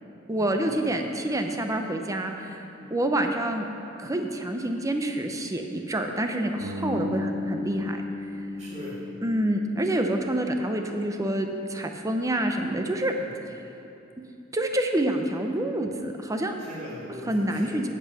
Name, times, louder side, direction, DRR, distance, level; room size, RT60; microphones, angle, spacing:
voice 1, 0.3-3.7 4.0-8.0 8.2-8.3 9.2-13.1 14.5-16.6 17.2-17.9, right 1 dB, 15° right, 4 dB, 0.7 m, -27 dB
Bass guitar, 6.6-10.5, left 2 dB, 70° right, 2.1 m, -35 dB
voice 2, 8.6-9.0 13.1-13.3 16.6-17.7, left 1 dB, 35° right, -7 dB, 2.4 m, -40 dB
8.5 x 8.4 x 5.8 m, 2.7 s
head